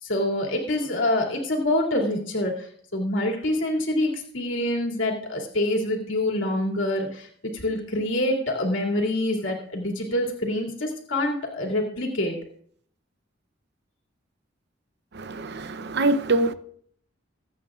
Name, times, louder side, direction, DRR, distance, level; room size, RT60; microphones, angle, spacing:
voice 1, 0.0-7.3 7.5-12.3, left 1 dB, 80° left, 2.7 m, -26 dB
voice 2, 15.1-16.5, right 2 dB, 60° right, 0.7 m, -24 dB
24.0 x 8.8 x 2.5 m
head